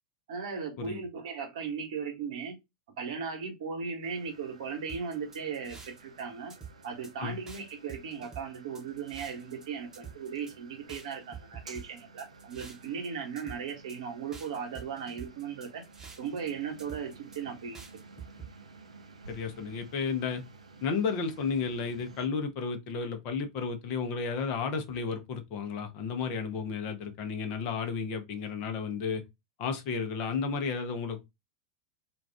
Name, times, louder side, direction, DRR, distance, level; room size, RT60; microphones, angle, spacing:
voice 1, 0.3-2.6 3.0-6.5 6.8-15.8 16.2-17.8, right 6 dB, 55° right, 1.0 m, -37 dB
sound 1, 4.0-22.3, right 4 dB, 75° right, 0.5 m, -53 dB
sound 2, 4.9-6.2 6.5-7.1 7.5-9.7 9.9-10.5 10.9-13.1 13.4-14.0 14.3-16.5 16.8-17.4 17.7-18.5, right 6 dB, 15° right, 0.9 m, -47 dB
voice 2, 19.3-20.4 20.8-29.2 29.6-31.2, left 5 dB, 40° left, 0.7 m, -33 dB
2.5 x 2.3 x 3.3 m
figure-of-eight pair, 90°, 3 cm